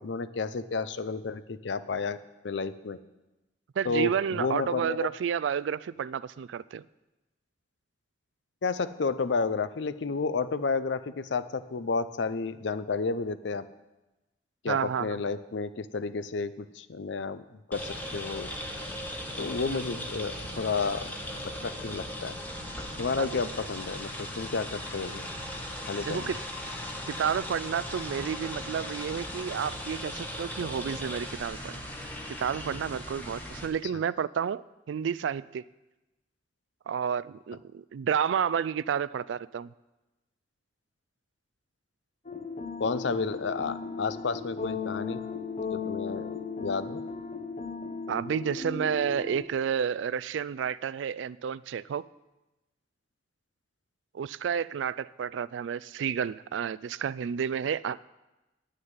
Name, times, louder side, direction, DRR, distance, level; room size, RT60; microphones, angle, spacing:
voice 1, 0.0-2.2 2.4-3.0 3.8-5.1 8.6-13.7 14.6-18.5 19.4-21.1 21.6-22.4 23.0-25.3 25.9-26.3 33.9-34.0 42.8-45.2 45.7-47.0, left 4 dB, 75° left, 14 dB, 0.6 m, -31 dB
voice 2, 3.8-6.8 14.7-15.2 19.6-19.8 23.2-23.3 26.1-26.4 27.1-31.8 32.3-35.6 36.9-39.7 48.1-52.1 54.1-58.0, right 7 dB, 85° right, 20 dB, 0.3 m, -31 dB
sound 1, 17.7-33.7, left 1 dB, 10° left, 1.3 m, -38 dB
sound 2, 42.3-49.5, left 5 dB, 40° left, 0.8 m, -36 dB
9.6 x 6.5 x 8.9 m, 1.0 s
head